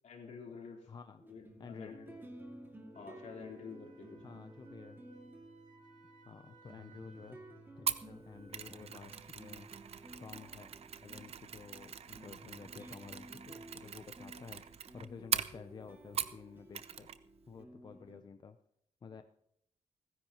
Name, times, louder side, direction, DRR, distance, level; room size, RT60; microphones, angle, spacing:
voice 1, 0.0-0.9 1.3-2.1 2.9-4.2, left 5 dB, 75° left, -1 dB, 3.6 m, -49 dB
voice 2, 0.9-1.2 1.6-2.0 4.2-5.0 6.3-9.7 10.2-10.7 11.0-14.6 14.9-17.1 17.5-18.6 19.0-19.2, left 5 dB, 35° left, 9 dB, 0.6 m, -51 dB
sound 1, 1.2-18.2, right 1 dB, 15° right, 2.2 m, -54 dB
Wind instrument woodwind instrument, 2.9-9.3, right 3 dB, 90° right, 2.8 m, -64 dB
Mechanisms, 7.9-16.5 16.7-17.2 17.5-17.6, right 8 dB, 55° right, 0.6 m, -41 dB
29.0 x 10.0 x 3.0 m, 0.76 s
wide cardioid pair, 140°, 12 cm